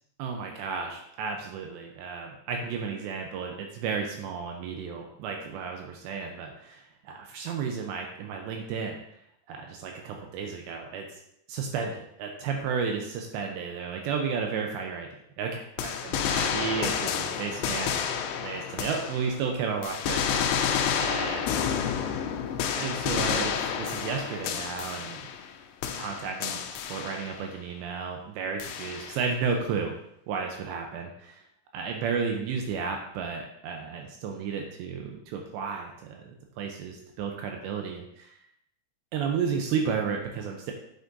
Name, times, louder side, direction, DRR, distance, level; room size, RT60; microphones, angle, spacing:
voice 1, 0.2-9.0 9.5-11.2 11.5-15.1 15.4-20.5 21.0-21.6 22.7-25.2 25.9-29.9 30.3-31.4 31.7-38.3 39.1-40.7, right 6 dB, 80° right, 2 dB, 2.9 m, -33 dB
sound 1, 15.8-19.5 19.8-25.5 25.8-27.5 28.6-29.3, left 8 dB, 85° left, 2.8 m, -30 dB
8.3 x 8.2 x 2.7 m, 0.75 s
omnidirectional pair, 5.1 m